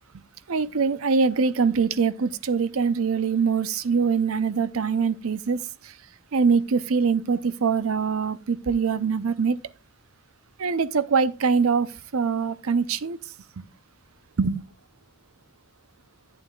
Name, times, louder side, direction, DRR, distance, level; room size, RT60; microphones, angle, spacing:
voice 1, 0.5-5.9 6.3-9.6 10.6-13.2 13.6-13.7 14.4-14.6, right 5 dB, 75° right, 0.6 m, -23 dB
11.0 x 9.2 x 2.3 m
head